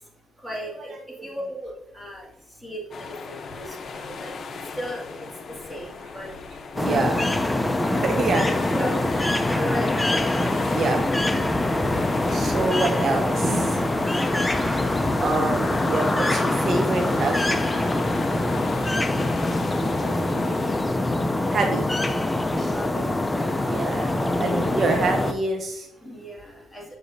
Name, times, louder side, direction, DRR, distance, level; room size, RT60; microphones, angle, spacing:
voice 1, 0.4-0.9 1.2-2.2 2.6-3.8 4.0-4.3 4.8-5.0 5.7-6.3 6.9-7.3 8.7-10.2 20.0-20.7 22.7-23.1 24.1-24.4 26.0-26.8, equal, 5° right, -3 dB, 2.2 m, -35 dB
sound 1, 2.9-20.9, left 4 dB, 50° left, 0.7 m, -38 dB
voice 2, 6.7-7.2 7.9-8.4 10.7-11.1 12.2-14.0 15.2-17.8 19.0-19.1 21.5-21.9 22.6-22.7 23.6-24.1 24.4-25.9, right 3 dB, 50° right, 4 dB, 0.8 m, -26 dB
sound 2, 6.8-25.3, left 2 dB, 15° left, 0.6 m, -24 dB
7.0 x 6.8 x 2.7 m, 0.87 s
cardioid pair, 90°, 0 cm